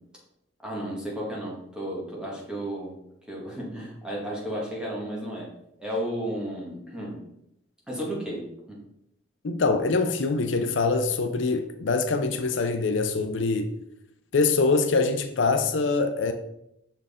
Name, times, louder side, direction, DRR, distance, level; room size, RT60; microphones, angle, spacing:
voice 1, 0.6-3.0 3.3-5.5 5.8-7.2 7.9-8.8, equal, 5° right, 1.7 m, -33 dB
voice 2, 9.4-13.7 14.3-16.3, left 3 dB, 75° left, 0.6 m, -24 dB
6.2 x 4.5 x 3.6 m
head